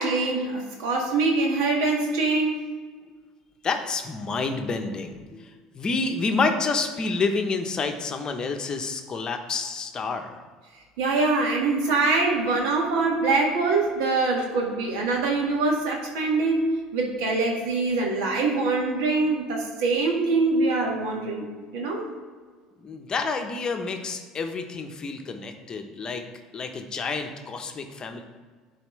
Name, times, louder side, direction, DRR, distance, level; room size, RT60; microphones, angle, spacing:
voice 1, 0.0-2.6 11.0-21.5 21.7-22.1, right 3 dB, 85° right, -1 dB, 1.8 m, -24 dB
voice 2, 3.6-10.4 22.8-26.3 26.5-28.2, left 4 dB, 35° left, 5 dB, 0.9 m, -29 dB
11.5 x 4.2 x 3.2 m, 1.5 s
supercardioid pair, 90°, 2 cm